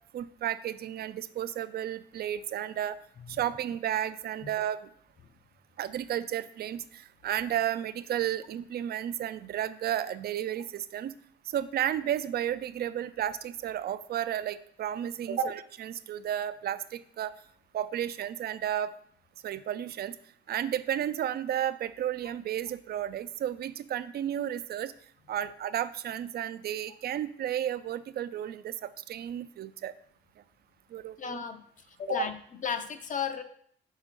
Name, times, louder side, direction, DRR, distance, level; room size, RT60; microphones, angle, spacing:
voice 1, 0.1-3.0 3.3-4.9 5.8-11.1 11.5-17.3 17.7-18.9 19.4-20.2 20.5-24.9 25.3-29.9 30.9-31.4 32.1-32.3, right 11 dB, 55° right, 14 dB, 0.4 m, -33 dB
voice 2, 31.2-31.6 32.0-32.3 32.6-33.4, left 7 dB, 40° left, 8 dB, 0.6 m, -32 dB
6.1 x 4.4 x 3.7 m, 0.64 s
cardioid pair, 90°, 20 cm